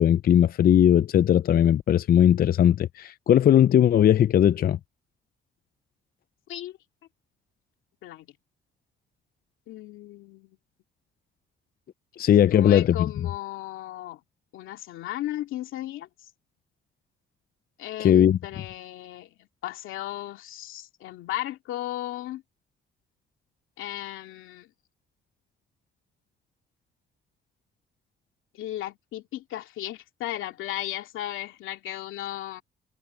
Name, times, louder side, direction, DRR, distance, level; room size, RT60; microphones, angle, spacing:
voice 1, 0.0-4.8 12.2-13.1 18.0-18.4, left 10 dB, 50° left, 0.5 m, -19 dB
voice 2, 9.7-10.6 12.5-14.2 14.5-16.1 17.8-22.4 23.8-24.7 28.5-32.6, left 14 dB, 90° left, 2.5 m, -35 dB
cardioid pair, 90°, 20 cm